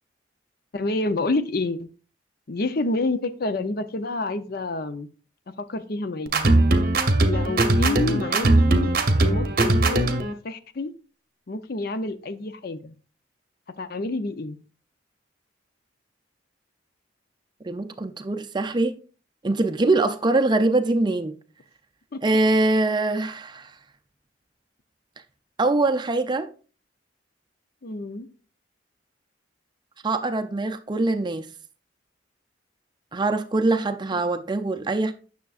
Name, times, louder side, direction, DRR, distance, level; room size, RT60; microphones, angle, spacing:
voice 1, 0.7-1.9 2.5-5.1 5.6-6.3 7.2-10.1 10.4-10.9 11.5-12.9 13.8-14.6 22.1-22.4 27.8-28.3, left 2 dB, 50° left, 0.6 m, -28 dB
sound 1, 6.3-10.3, right 2 dB, 50° right, 0.9 m, -20 dB
voice 2, 17.6-19.0 19.4-21.3 22.2-23.7 25.6-26.5 30.0-31.5 33.1-35.1, right 2 dB, 25° right, 0.5 m, -23 dB
9.4 x 6.5 x 2.4 m
head